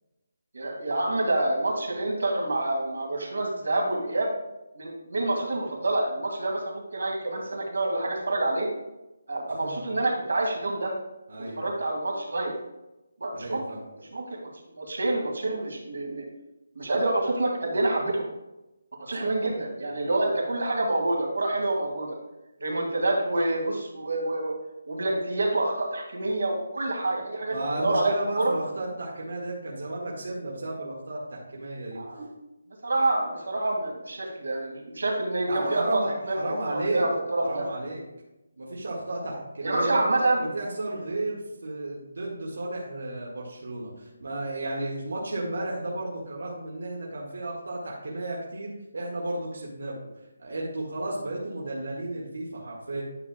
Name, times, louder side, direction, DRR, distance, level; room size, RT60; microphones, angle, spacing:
voice 1, 0.5-4.3 4.8-8.7 9.3-10.9 11.6-12.5 13.2-13.6 14.1-16.3 16.8-18.3 19.0-22.2 22.6-24.5 24.9-28.5 32.0-32.3 32.8-36.4 36.7-37.6 39.6-40.4, right 2 dB, 85° right, 0 dB, 2.1 m, -27 dB
voice 2, 11.3-11.7 13.4-13.8 19.2-19.3 27.5-32.0 35.5-37.1 37.4-38.0 38.6-40.0 40.4-50.0 50.4-53.0, right 2 dB, 70° right, -4 dB, 1.8 m, -33 dB
9.8 x 6.7 x 2.3 m, 0.97 s
hypercardioid pair, 180°, 0 cm